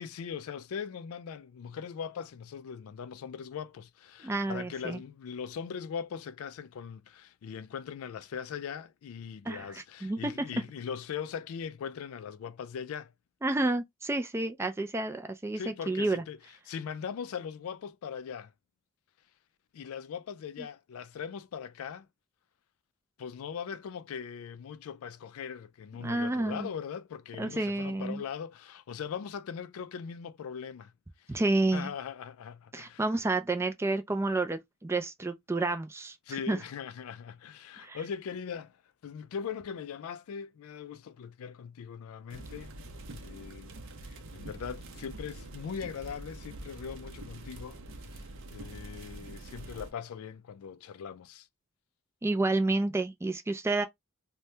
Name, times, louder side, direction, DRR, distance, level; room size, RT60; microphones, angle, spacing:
voice 1, 0.0-13.1 15.5-16.4 16.7-18.5 19.7-22.1 23.2-30.9 31.2-31.4 31.7-33.0 36.3-38.8 39.0-42.7 43.1-43.7 44.0-47.8 48.1-51.5, left 7 dB, 75° left, 0.3 m, -40 dB
voice 2, 4.2-5.0 9.5-10.3 13.4-16.2 26.0-26.7 27.4-28.2 31.3-31.9 32.7-36.2 36.5-36.6 37.8-38.0 52.2-53.8, right 2 dB, 10° right, 0.3 m, -30 dB
sound 1, 42.3-49.9, right 2 dB, 60° right, 0.6 m, -45 dB
2.7 x 2.2 x 3.1 m
head